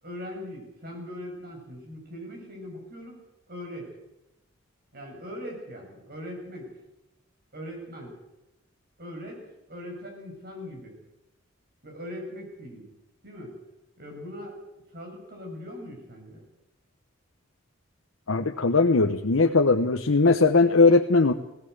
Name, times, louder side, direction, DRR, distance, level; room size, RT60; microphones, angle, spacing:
voice 1, 0.0-3.2 3.5-3.9 4.9-6.7 7.5-8.1 9.0-9.4 9.7-10.9 11.8-12.9 13.2-13.5 14.0-14.6 14.9-16.4, left 1 dB, 50° right, 1 dB, 7.0 m, -40 dB
voice 2, 18.3-21.3, left 3 dB, 75° left, 6 dB, 1.0 m, -19 dB
19.5 x 17.0 x 8.0 m, 0.91 s
head